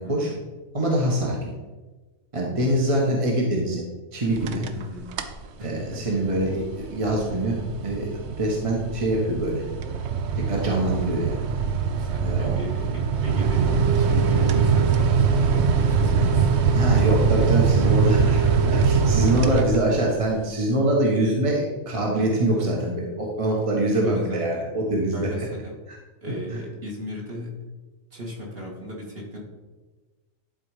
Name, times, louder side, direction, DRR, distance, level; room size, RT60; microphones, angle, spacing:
voice 1, 0.0-0.4 4.8-5.1 5.6-6.2 11.8-17.2 17.9-18.7 19.4-19.6 23.5-24.7 25.1-25.7 26.2-27.6 28.1-29.4, equal, 45° right, -3 dB, 2.0 m, -36 dB
voice 2, 0.7-1.5 2.3-3.8 4.1-4.7 5.6-9.6 10.4-11.4 12.2-12.6 16.7-18.4 18.7-25.5 26.5-26.6, right 1 dB, 25° right, -2 dB, 1.2 m, -24 dB
sound 1, 4.3-4.8 5.1-5.5 5.9-20.2, right 6 dB, 60° right, 0.9 m, -22 dB
11.0 x 4.2 x 4.9 m, 1.2 s
omnidirectional pair, 1.4 m